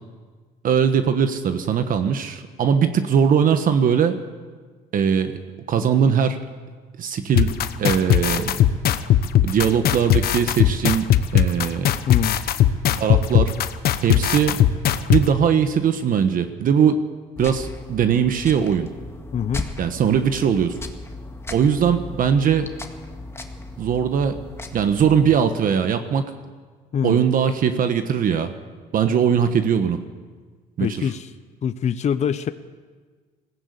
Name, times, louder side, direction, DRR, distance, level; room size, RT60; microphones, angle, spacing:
voice 1, 0.6-4.2 4.9-5.3 5.7-6.4 7.0-8.6 9.4-11.9 13.0-13.5 14.0-14.6 15.1-17.0 17.4-18.9 19.8-20.7 21.5-22.7 23.8-24.4 24.7-26.3 27.0-28.5 28.9-30.0 30.8-31.1, right 7 dB, 55° right, 8 dB, 1.3 m, -20 dB
sound 1, 7.4-15.2, left 11 dB, 65° left, 1.1 m, -18 dB
voice 2, 12.1-12.4 19.3-19.7 26.9-27.2 30.8-31.3 31.6-32.5, left 8 dB, 40° left, 11 dB, 0.8 m, -24 dB
sound 2, 17.4-25.4, left 2 dB, 15° left, 1.9 m, -36 dB
20.5 x 16.0 x 8.4 m, 1.5 s
cardioid pair, 110°, 17 cm